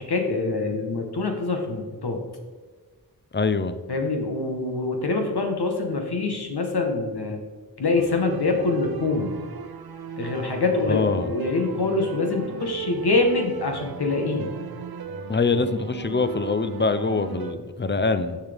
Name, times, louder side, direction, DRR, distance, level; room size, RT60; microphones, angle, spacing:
voice 1, 0.0-2.2 3.9-7.4 7.8-9.3 10.2-14.5, left 3 dB, 75° left, 4 dB, 1.2 m, -25 dB
voice 2, 3.3-3.8 10.9-11.3 15.3-18.4, left 4 dB, 30° left, 11 dB, 0.6 m, -24 dB
sound 1, 7.9-17.5, right 6 dB, 65° right, 0.7 m, -37 dB
7.5 x 6.7 x 3.5 m, 1.4 s
cardioid pair, 40°, 39 cm